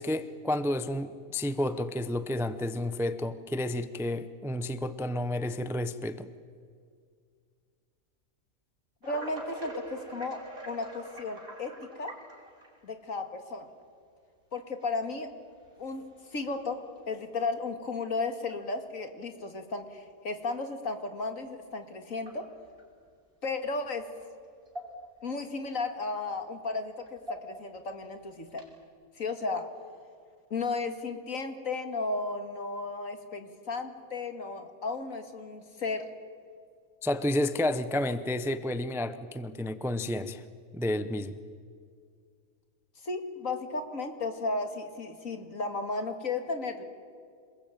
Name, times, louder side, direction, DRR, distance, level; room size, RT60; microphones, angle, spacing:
voice 1, 0.0-6.3 37.0-40.4 40.7-41.3, left 1 dB, ahead, 12 dB, 0.6 m, -31 dB
voice 2, 9.0-12.2 12.8-13.7 14.5-15.3 15.8-22.4 23.4-24.0 25.2-28.6 29.2-29.7 30.5-36.1 43.0-46.8, left 3 dB, 60° left, 7 dB, 2.6 m, -34 dB
sound 1, 9.0-12.9 13.7-13.8 14.8-14.9 15.6-16.0 16.4-16.5 17.0-17.1 18.5-18.6 21.4-21.5 22.2-22.8 24.2-24.3 24.7-25.3 25.6-25.7 27.1-27.8 28.5-28.8, right 1 dB, 40° right, 5.3 m, -44 dB
27.5 x 21.0 x 9.2 m, 2.2 s
omnidirectional pair, 1.5 m